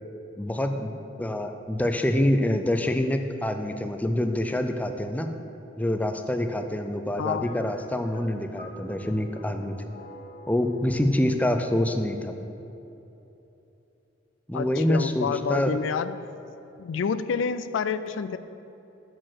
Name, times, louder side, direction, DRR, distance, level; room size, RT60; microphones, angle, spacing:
voice 1, 0.4-5.3 5.8-9.9 10.5-12.3 14.5-15.7, left 1 dB, 10° left, 6 dB, 0.4 m, -26 dB
voice 2, 7.2-7.5 14.5-16.2 16.8-18.4, left 6 dB, 80° left, 13 dB, 0.4 m, -28 dB
sound 1, 7.4-12.9, equal, 45° left, 0.9 m, -48 dB
6.4 x 6.1 x 6.5 m, 3.0 s
head